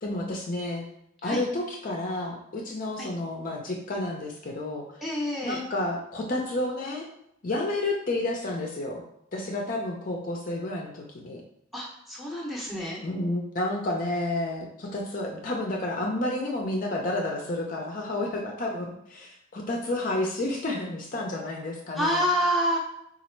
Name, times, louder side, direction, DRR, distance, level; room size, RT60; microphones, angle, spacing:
voice 1, 0.0-0.8 1.2-4.9 5.4-7.0 7.4-9.0 9.3-11.4 13.0-22.3, left 1 dB, 40° left, 1 dB, 0.5 m, -30 dB
voice 2, 5.0-5.6 11.7-13.0 21.9-22.8, equal, ahead, -4 dB, 0.7 m, -27 dB
4.0 x 2.4 x 4.3 m, 0.77 s
head